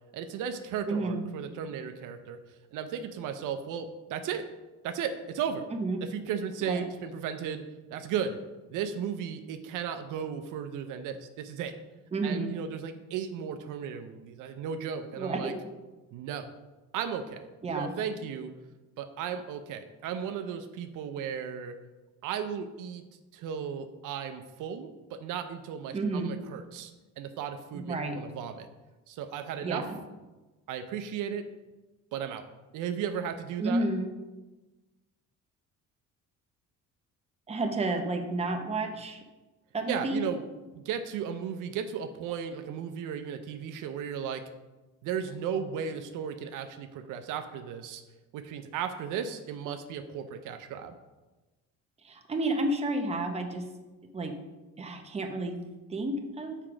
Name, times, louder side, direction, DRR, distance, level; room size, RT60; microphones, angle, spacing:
voice 1, 0.1-2.4 2.7-4.4 4.8-5.7 6.0-7.6 7.9-8.4 8.7-11.7 12.2-15.5 16.1-16.5 16.9-18.5 19.0-21.7 22.2-23.0 23.3-28.7 29.1-29.8 30.7-31.4 32.1-32.4 32.7-33.8 39.9-40.4 40.7-44.4 45.0-48.0 48.3-50.9, right 7 dB, 75° right, 8 dB, 0.6 m, -35 dB
voice 2, 0.9-1.2 5.7-6.0 6.6-6.8 12.1-12.5 15.2-15.5 17.6-18.0 25.9-26.4 27.7-28.2 29.6-30.0 33.6-34.1 37.5-39.2 39.7-40.2 52.0-53.6 54.1-54.3 54.8-55.6 55.9-56.6, right 2 dB, 20° right, 4 dB, 0.8 m, -31 dB
5.8 x 4.5 x 4.9 m, 1.1 s
cardioid pair, 115°, 31 cm